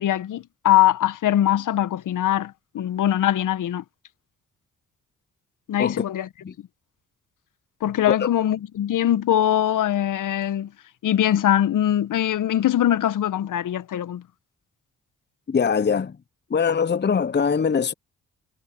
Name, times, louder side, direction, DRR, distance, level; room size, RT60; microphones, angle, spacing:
voice 1, 0.0-3.8 5.7-6.3 7.8-10.7 11.0-14.2, left 12 dB, 65° left, 1.9 m, -22 dB
voice 2, 15.5-16.1 16.5-17.9, left 6 dB, 30° left, 0.9 m, -22 dB
hypercardioid pair, 45°, 34 cm